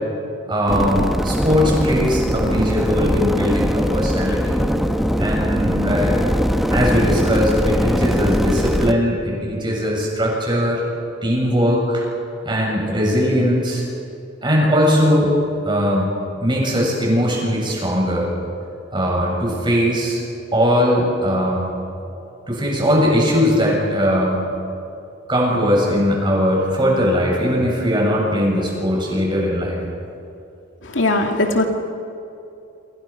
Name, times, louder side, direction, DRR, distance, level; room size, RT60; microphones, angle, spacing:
voice 1, 0.5-4.6 5.2-6.3 6.7-10.8 11.2-12.0 12.4-13.8 14.4-15.3 15.6-16.1 16.4-18.3 18.9-20.2 20.5-21.7 22.5-24.4 25.3-29.8, equal, 25° right, -2 dB, 7.4 m, -19 dB
sound 1, 0.7-8.9, equal, ahead, 1.0 m, -21 dB
voice 2, 30.8-31.7, left 2 dB, 80° left, 3 dB, 2.4 m, -19 dB
28.0 x 27.0 x 5.9 m, 2.7 s
head